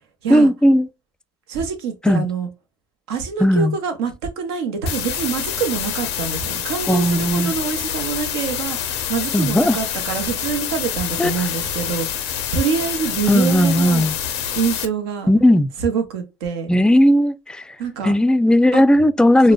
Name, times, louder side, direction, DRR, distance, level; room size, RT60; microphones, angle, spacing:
voice 1, 0.3-0.9 2.0-2.3 3.4-3.8 6.9-7.6 9.3-9.8 11.2-11.5 13.3-14.2 15.3-15.7 16.7-17.8 18.0-19.5, equal, 5° left, 0.3 m, -16 dB
voice 2, 1.5-2.5 3.1-14.1 14.6-15.3 15.8-16.7 17.8-18.1 18.7-18.8 19.4-19.5, right 6 dB, 85° right, 0.7 m, -25 dB
sound 1, 4.9-14.9, left 9 dB, 85° left, 0.5 m, -26 dB
4.7 x 2.1 x 2.3 m
hypercardioid pair, 65°, 13 cm